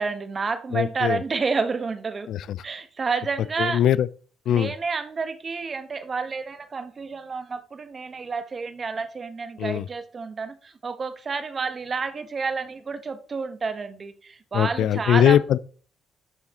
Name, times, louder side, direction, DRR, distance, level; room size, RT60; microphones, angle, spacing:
voice 1, 0.0-2.3 2.6-3.8 4.5-15.4, right 4 dB, 40° right, 1.1 m, -30 dB
voice 2, 0.7-1.2 2.3-2.6 3.6-4.1 4.5-4.7 9.6-9.9 14.5-15.6, left 10 dB, 75° left, 0.3 m, -21 dB
12.0 x 4.2 x 3.7 m
cardioid pair, 90°, 0 cm